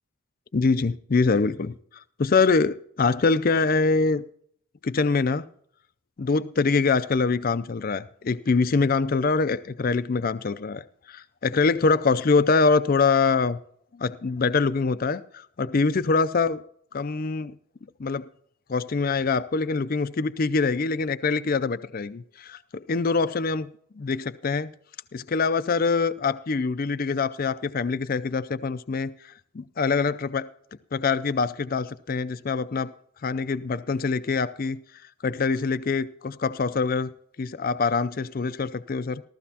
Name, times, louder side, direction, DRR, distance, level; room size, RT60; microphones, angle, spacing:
voice 1, 0.5-4.2 4.8-5.4 6.2-13.6 13.9-16.6 16.9-17.5 18.0-18.2 18.7-23.7 24.0-24.7 25.1-30.5 30.9-32.9 33.2-37.1 37.4-39.2, left 4 dB, 40° left, 13 dB, 0.4 m, -24 dB
14.5 x 14.5 x 2.8 m, 0.63 s
head